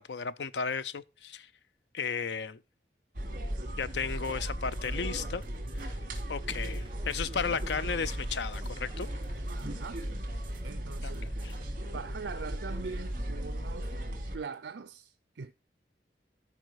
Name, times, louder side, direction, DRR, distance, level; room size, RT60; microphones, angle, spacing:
voice 1, 0.0-1.5 1.9-2.6 3.8-5.4 6.3-9.1 11.0-11.1 11.4-11.5, left 5 dB, 80° left, 0.6 m, -34 dB
sound 1, 3.1-14.4, equal, 50° right, 3.0 m, -36 dB
sound 2, 4.0-11.8, right 2 dB, 30° right, 1.1 m, -53 dB
voice 2, 9.5-10.1 10.6-11.4 11.9-13.9 14.3-15.5, right 5 dB, 80° right, 0.5 m, -42 dB
13.0 x 5.6 x 4.7 m
head